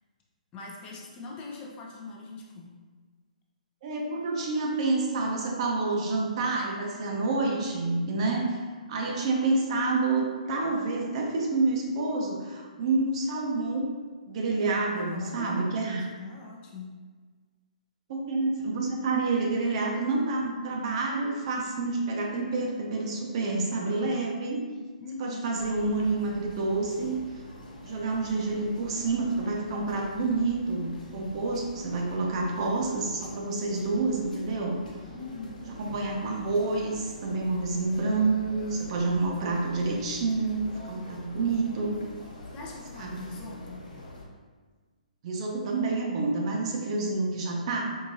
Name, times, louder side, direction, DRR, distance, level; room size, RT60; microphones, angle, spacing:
voice 1, 0.5-2.7 14.9-15.7 16.1-16.9 25.0-25.6 35.1-35.7 42.5-43.8, left 3 dB, 20° left, -2 dB, 0.6 m, -41 dB
voice 2, 3.8-8.6 8.9-13.9 14.3-16.1 18.1-24.6 25.2-27.2 27.8-34.8 35.7-42.0 43.0-43.3 45.2-47.8, right 3 dB, 45° right, 0 dB, 0.7 m, -28 dB
sound 1, 25.6-44.2, left 1 dB, 75° left, 0.9 m, -45 dB
4.6 x 2.6 x 2.7 m, 1.5 s
hypercardioid pair, 135°, 4 cm